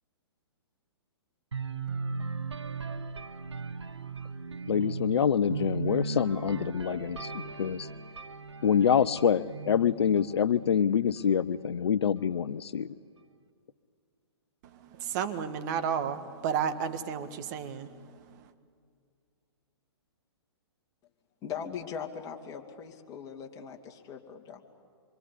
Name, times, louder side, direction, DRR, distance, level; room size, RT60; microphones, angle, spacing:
sound 1, 1.5-11.3, right 4 dB, 85° right, 1.5 m, -38 dB
voice 1, 4.7-7.9 8.6-12.9, left 8 dB, 70° left, 17 dB, 0.7 m, -26 dB
voice 2, 14.6-18.5, right 7 dB, 40° right, 9 dB, 1.7 m, -33 dB
voice 3, 21.4-24.6, left 7 dB, 25° left, 2 dB, 2.8 m, -40 dB
26.0 x 25.0 x 8.4 m, 2.2 s
hypercardioid pair, 125°, 14 cm